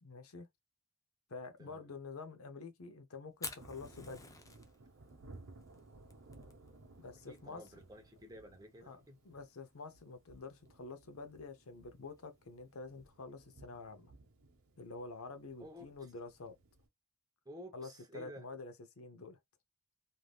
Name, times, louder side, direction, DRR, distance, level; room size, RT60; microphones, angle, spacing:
voice 1, 0.0-0.5 1.3-4.3 7.0-7.6 8.9-14.1 14.8-16.5 17.7-17.9 18.1-19.4, left 3 dB, 70° left, 0.6 m, -48 dB
Fire, 3.3-13.1, left 4 dB, 15° left, 0.5 m, -54 dB
Thunder, 3.6-16.9, right 2 dB, 65° right, 0.8 m, -59 dB
voice 2, 7.3-9.2 15.6-16.1 17.4-18.5, equal, 15° right, 0.8 m, -52 dB
3.4 x 2.5 x 2.3 m
head